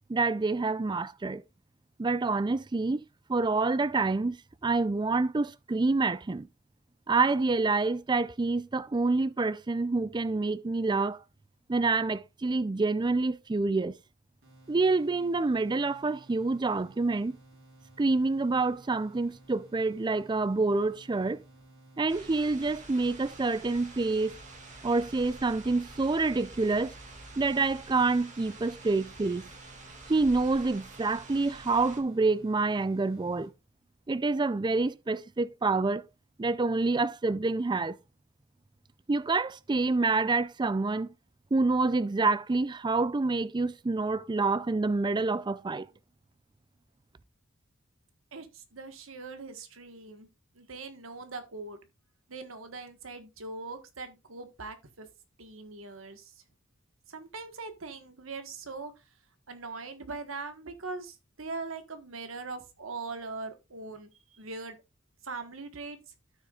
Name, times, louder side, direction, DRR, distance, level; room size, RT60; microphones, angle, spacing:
voice 1, 0.1-1.4 2.0-3.0 3.3-4.3 4.6-6.5 7.1-11.2 11.7-13.9 14.7-17.3 18.0-21.4 22.0-24.4 24.8-26.9 27.4-29.5 30.1-33.5 34.1-36.0 36.4-38.0 39.1-41.1 41.5-45.9, right 3 dB, 20° right, 0.4 m, -27 dB
sound 1, 14.4-33.5, right 2 dB, 65° right, 4.3 m, -56 dB
sound 2, 22.1-32.0, right 2 dB, 40° right, 1.9 m, -48 dB
voice 2, 48.3-50.3 50.5-51.8 52.3-55.1 55.4-56.3 57.1-58.9 59.5-64.8 65.2-66.0, right 3 dB, 85° right, 1.4 m, -41 dB
13.0 x 6.5 x 2.4 m
head